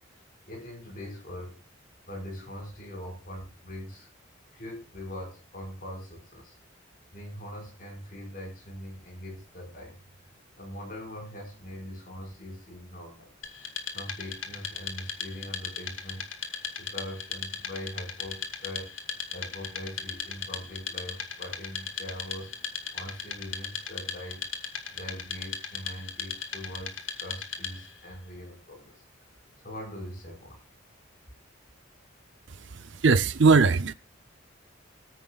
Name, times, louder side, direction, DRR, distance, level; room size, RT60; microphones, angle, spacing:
voice 1, 0.1-1.6 2.1-4.1 4.5-6.5 7.1-10.0 10.6-13.3 13.9-16.5 16.8-24.4 24.9-29.0 29.6-30.6, equal, 45° left, 5.2 m, -42 dB
Wood, 13.4-28.0, left 6 dB, 80° left, 1.8 m, -37 dB
voice 2, 32.5-33.9, right 4 dB, 60° right, 0.6 m, -21 dB
24.5 x 9.2 x 2.4 m
head